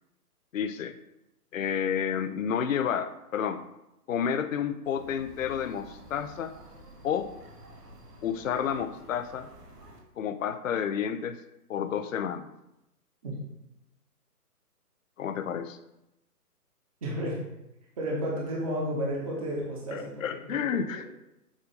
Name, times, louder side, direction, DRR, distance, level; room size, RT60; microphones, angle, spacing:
voice 1, 0.5-0.9 1.5-3.6 4.1-6.5 7.0-7.3 8.2-9.5 10.2-11.4 11.7-12.5 15.2-15.8 19.9-21.1, left 8 dB, 60° left, 10 dB, 0.5 m, -30 dB
sound 1, 4.8-10.0, right 1 dB, 85° right, 1.5 m, -50 dB
voice 2, 17.0-17.4 18.0-21.1, equal, 25° right, -3 dB, 1.0 m, -32 dB
7.2 x 2.6 x 5.1 m, 0.87 s
hypercardioid pair, 160°, 47 cm